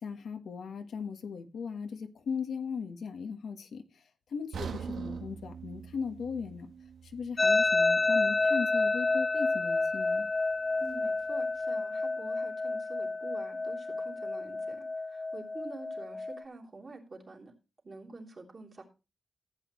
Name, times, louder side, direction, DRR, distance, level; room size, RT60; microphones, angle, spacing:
voice 1, 0.0-4.0 4.3-6.7 7.0-10.3, left 6 dB, 80° left, 1.3 m, -38 dB
sound 1, 4.5-8.6 8.9-9.1 9.7-9.8, right 6 dB, 85° right, 1.2 m, -43 dB
sound 2, 7.4-16.4, left 3 dB, 35° left, 0.4 m, -29 dB
voice 2, 10.8-17.5 17.8-18.8, right 3 dB, 40° right, 3.2 m, -47 dB
14.5 x 8.4 x 3.1 m
wide cardioid pair, 110°, 0 cm